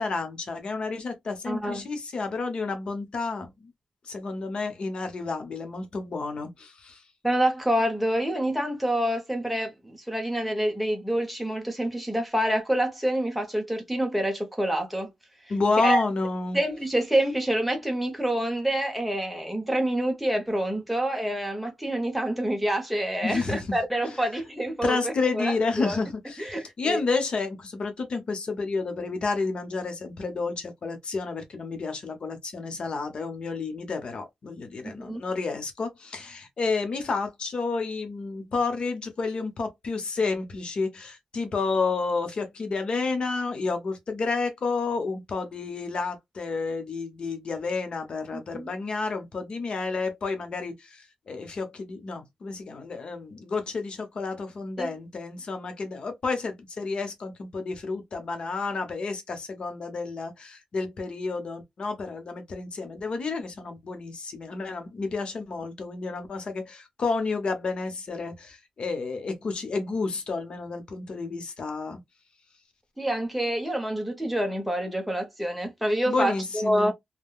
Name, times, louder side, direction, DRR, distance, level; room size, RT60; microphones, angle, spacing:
voice 1, 0.0-3.7 4.0-7.0 15.5-16.6 23.2-23.7 24.8-72.0 76.0-76.9, left 4 dB, 55° left, 0.8 m, -30 dB
voice 2, 1.5-1.9 7.2-15.1 15.8-16.0 16.5-26.0 26.4-27.0 34.8-35.2 48.3-48.7 54.8-54.9 73.0-76.9, right 1 dB, ahead, 0.8 m, -27 dB
3.6 x 2.2 x 2.3 m
wide cardioid pair, 120°, 2 cm